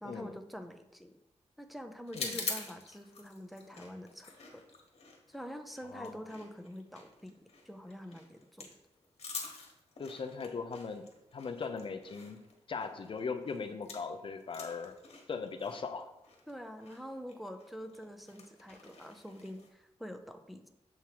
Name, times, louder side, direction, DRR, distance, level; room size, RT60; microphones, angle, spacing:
voice 1, 0.0-1.2 1.6-4.6 5.3-7.4 7.6-8.8 16.5-20.7, equal, ahead, 6 dB, 0.5 m, -46 dB
sound 1, 2.1-14.2 14.4-19.7, left 4 dB, 70° left, 1.3 m, -46 dB
voice 2, 10.0-11.1 11.3-12.4 12.7-14.9 15.3-16.1, left 5 dB, 50° left, 8 dB, 0.6 m, -39 dB
7.1 x 3.6 x 4.6 m, 0.93 s
wide cardioid pair, 135°, 11 cm